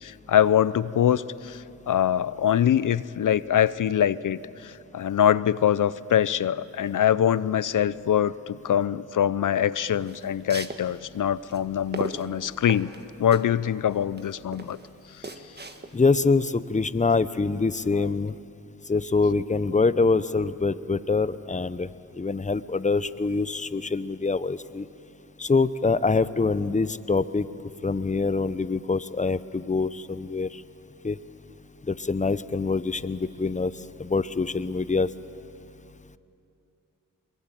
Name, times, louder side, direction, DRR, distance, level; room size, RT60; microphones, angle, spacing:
voice 1, 0.0-12.9 13.2-14.8 17.9-18.1, left 10 dB, 65° left, 18 dB, 0.7 m, -24 dB
sound 1, 9.9-16.2, right 2 dB, 30° right, 1.8 m, -38 dB
voice 2, 15.9-18.4 18.9-24.9 25.4-27.5 27.8-30.6 31.0-31.2 31.9-35.1, left 4 dB, 20° left, 15 dB, 0.8 m, -25 dB
22.5 x 22.0 x 9.1 m, 2.7 s
cardioid pair, 50°, 34 cm